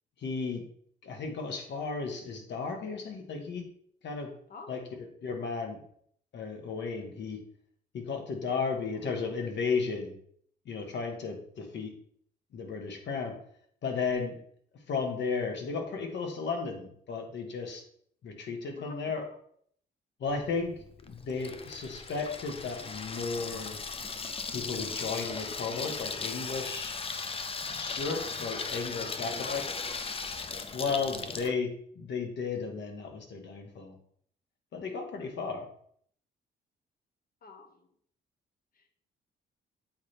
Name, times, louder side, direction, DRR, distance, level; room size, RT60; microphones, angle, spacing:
voice 1, 0.2-0.6 1.0-3.6 4.0-4.3 4.7-5.8 6.3-7.4 7.9-10.1 10.6-11.9 12.5-13.4 13.8-14.4 14.9-17.8 18.2-19.3 20.2-20.7 21.0-23.8 24.5-26.9 27.8-29.7 30.7-31.7 31.9-34.0 34.7-35.7, left 4 dB, 65° left, 3 dB, 1.6 m, -34 dB
voice 2, 8.5-8.8 18.8-19.1 28.1-28.4 28.7-29.7 37.4-37.9 38.7-38.9, left 3 dB, 45° left, 4 dB, 1.3 m, -47 dB
Water tap faucet / Sink (filling or washing), 20.3-31.5, left 4 dB, 30° left, 0.5 m, -37 dB
8.1 x 3.4 x 4.5 m, 0.63 s
cardioid pair, 90°, 20 cm